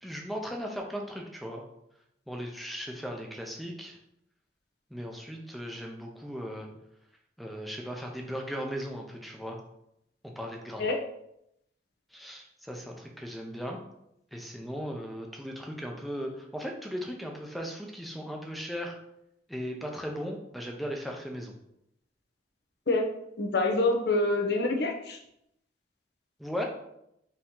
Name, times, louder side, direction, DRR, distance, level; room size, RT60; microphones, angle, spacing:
voice 1, 0.0-1.6 2.3-4.0 4.9-6.7 7.4-9.6 10.2-10.9 12.1-13.8 14.3-19.0 19.5-21.5 26.4-26.6, equal, ahead, 1 dB, 0.6 m, -37 dB
voice 2, 23.4-25.2, left 2 dB, 60° left, 2 dB, 0.7 m, -26 dB
4.3 x 2.8 x 3.7 m, 0.78 s
head